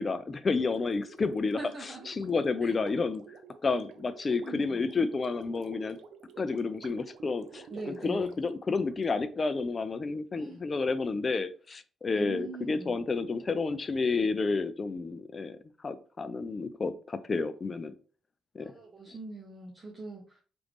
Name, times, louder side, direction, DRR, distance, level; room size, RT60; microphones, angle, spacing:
voice 1, 0.0-1.6 2.1-3.2 3.6-6.0 6.4-7.7 8.0-15.6 15.8-17.9 18.5-18.7, left 4 dB, 35° left, 12 dB, 0.3 m, -30 dB
Gurgling, 0.7-9.0, right 6 dB, 80° right, 0.4 m, -51 dB
voice 2, 1.6-2.1 2.6-2.7 3.7-3.8 4.4-4.8 7.7-8.4 10.4-10.6 12.1-13.0 18.6-20.4, right 3 dB, 30° right, -1 dB, 0.7 m, -42 dB
3.1 x 2.5 x 3.3 m, 0.41 s
cardioid pair, 90°, 0 cm